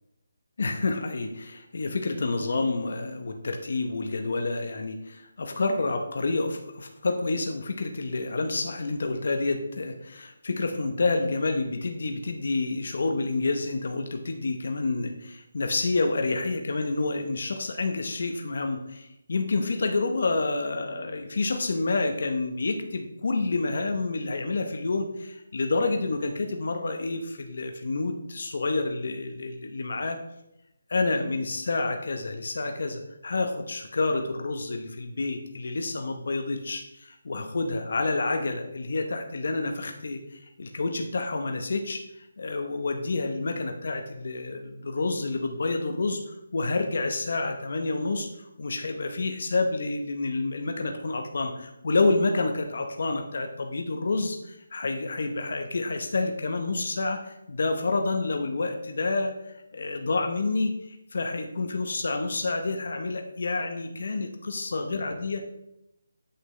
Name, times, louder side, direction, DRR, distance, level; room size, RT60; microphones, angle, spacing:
voice 1, 0.6-30.2 30.9-65.4, left 3 dB, 60° left, 4 dB, 0.8 m, -29 dB
8.2 x 5.9 x 3.3 m, 0.85 s
hypercardioid pair, 170°, 0 cm